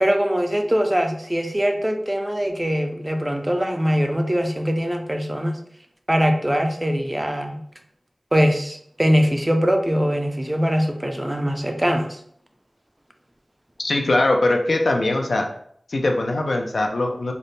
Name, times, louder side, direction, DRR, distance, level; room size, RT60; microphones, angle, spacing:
voice 1, 0.0-5.6 6.1-7.6 8.3-12.2, equal, 20° right, 4 dB, 0.5 m, -22 dB
voice 2, 13.8-15.5 15.9-17.3, left 2 dB, 75° left, 3 dB, 0.5 m, -21 dB
3.3 x 2.1 x 3.9 m, 0.64 s
wide cardioid pair, 75°, 0 cm